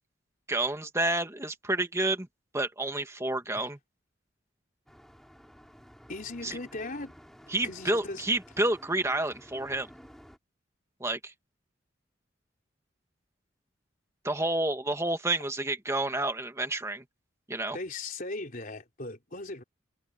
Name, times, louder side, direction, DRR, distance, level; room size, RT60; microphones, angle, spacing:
voice 1, 0.5-2.3 2.5-3.8 6.4-6.6 7.5-9.9 11.0-11.3 14.2-17.0 17.5-17.8, right 2 dB, 15° right, 2.1 m, -29 dB
sound 1, 4.9-10.4, equal, ahead, 6.6 m, -53 dB
voice 2, 6.1-7.1 7.6-8.2 17.7-19.6, left 2 dB, 45° left, 4.1 m, -38 dB
head